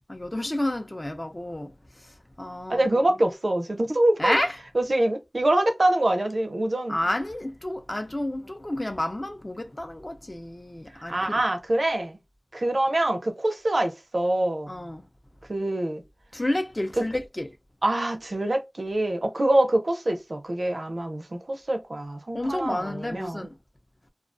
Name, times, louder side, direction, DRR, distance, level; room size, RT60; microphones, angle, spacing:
voice 1, 0.1-3.0 4.2-4.6 6.9-11.4 14.7-15.1 16.3-17.5 22.3-23.6, left 1 dB, 35° left, 0.5 m, -30 dB
voice 2, 2.7-4.4 4.7-7.0 10.9-12.2 12.5-14.7 15.5-16.0 17.0-17.1 17.8-23.5, right 1 dB, 75° right, 0.5 m, -25 dB
2.3 x 2.2 x 2.5 m
wide cardioid pair, 50°, 0 cm